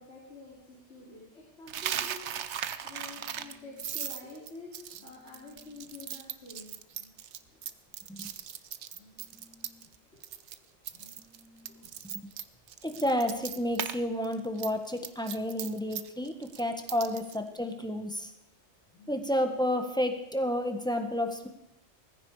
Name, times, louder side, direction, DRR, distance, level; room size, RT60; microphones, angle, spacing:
voice 1, 0.0-2.3 2.8-7.6 8.9-10.2 10.9-11.9 12.9-13.4 17.3-17.4 18.9-19.6, left 3 dB, 70° left, -4 dB, 3.4 m, -50 dB
Coin (dropping), 1.7-9.9 10.2-10.6 10.8-14.0 14.2-17.4, right 9 dB, 75° right, 1.1 m, -38 dB
voice 2, 12.8-18.3 19.1-21.5, left 1 dB, 5° left, 5 dB, 1.5 m, -31 dB
18.5 x 15.0 x 5.0 m, 0.84 s
omnidirectional pair, 1.2 m